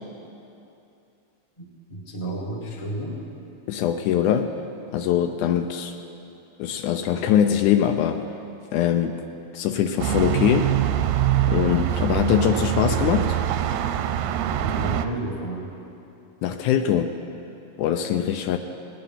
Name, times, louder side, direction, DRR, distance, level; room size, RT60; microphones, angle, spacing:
voice 1, 1.6-3.2 12.0-13.2 14.6-15.7, right 1 dB, 15° left, -3 dB, 1.0 m, -32 dB
voice 2, 3.7-4.5 4.9-5.9 6.6-8.2 8.7-9.2 9.5-10.7 11.5-13.3 16.4-17.1 17.8-18.6, left 9 dB, 80° left, 7 dB, 2.0 m, -22 dB
sound 1, 10.0-15.1, right 11 dB, 80° right, 1.9 m, -24 dB
18.0 x 10.5 x 5.7 m, 2.7 s
omnidirectional pair, 3.7 m